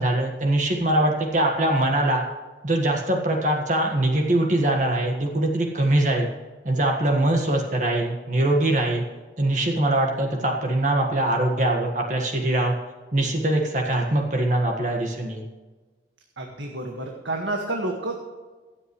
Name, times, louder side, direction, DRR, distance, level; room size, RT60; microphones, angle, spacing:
voice 1, 0.0-2.2 2.6-6.3 6.6-9.0 9.4-12.7 13.1-15.4, right 1 dB, 40° right, 1 dB, 1.7 m, -22 dB
voice 2, 16.4-18.2, right 2 dB, 85° right, 1 dB, 1.8 m, -29 dB
25.5 x 8.6 x 3.3 m, 1.3 s
head